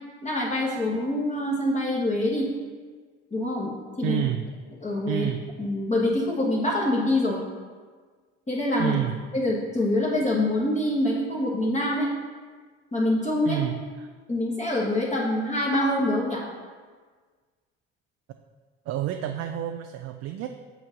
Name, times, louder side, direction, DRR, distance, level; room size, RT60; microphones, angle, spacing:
voice 1, 0.2-2.5 3.3-4.2 4.8-5.3 5.6-7.4 8.5-9.0 9.3-12.1 12.9-13.6 14.3-16.4, left 1 dB, 25° left, -5 dB, 1.3 m, -25 dB
voice 2, 4.0-4.5 5.1-5.5 8.8-9.2 13.4-14.1 18.9-20.5, right 12 dB, 55° right, 6 dB, 0.4 m, -29 dB
6.0 x 4.6 x 3.8 m, 1.5 s
hypercardioid pair, 65°, 31 cm